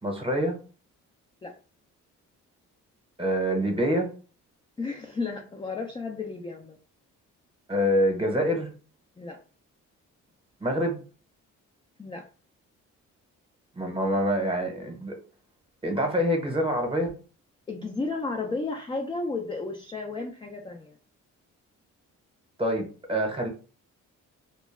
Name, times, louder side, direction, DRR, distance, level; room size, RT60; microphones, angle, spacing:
voice 1, 0.0-0.6 3.2-4.1 7.7-8.7 10.6-11.0 13.7-15.2 15.8-17.1 22.6-23.5, equal, 15° right, 2 dB, 0.8 m, -26 dB
voice 2, 4.8-6.8 9.2-9.4 12.0-12.3 17.7-21.0, left 3 dB, 15° left, 2 dB, 0.3 m, -33 dB
2.2 x 2.1 x 3.1 m, 0.37 s
cardioid pair, 90°, 31 cm